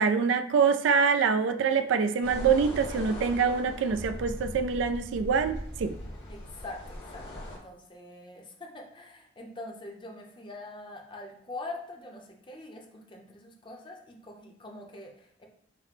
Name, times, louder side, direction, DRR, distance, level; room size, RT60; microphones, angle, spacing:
voice 1, 0.0-5.9, right 6 dB, 80° right, 8 dB, 0.3 m, -25 dB
sound 1, 2.2-7.6, left 1 dB, 80° left, 1.8 m, -40 dB
voice 2, 6.3-15.5, left 2 dB, 25° left, 1 dB, 0.6 m, -44 dB
5.8 x 2.0 x 4.1 m, 0.70 s
head